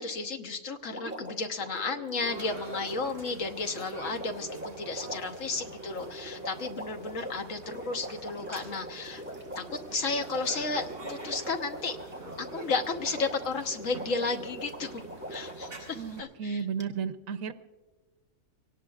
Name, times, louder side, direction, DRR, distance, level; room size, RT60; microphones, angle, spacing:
voice 1, 0.0-9.2 9.6-12.0 12.4-15.0 15.3-16.6, left 3 dB, 70° left, 5 dB, 1.4 m, -33 dB
Water, 0.9-15.9 16.8-16.9, right 1 dB, 10° right, 1.6 m, -42 dB
sound 1, 2.2-16.2, right 2 dB, 40° right, 5.1 m, -46 dB
voice 2, 15.9-17.5, right 6 dB, 75° right, 10 dB, 1.1 m, -33 dB
24.5 x 18.0 x 2.4 m, 1.3 s
omnidirectional pair, 1.4 m